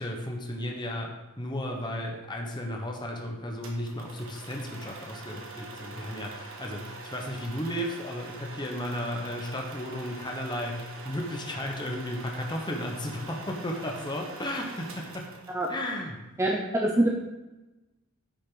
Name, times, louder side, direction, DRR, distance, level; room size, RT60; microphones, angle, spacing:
voice 1, 0.0-15.3 15.7-16.2, left 1 dB, 20° left, 1 dB, 1.1 m, -34 dB
sound 1, 3.6-15.9, right 3 dB, 70° right, 1.5 m, -44 dB
voice 2, 16.4-17.1, right 1 dB, 15° right, 0 dB, 0.7 m, -24 dB
10.0 x 6.4 x 3.9 m, 1.0 s
head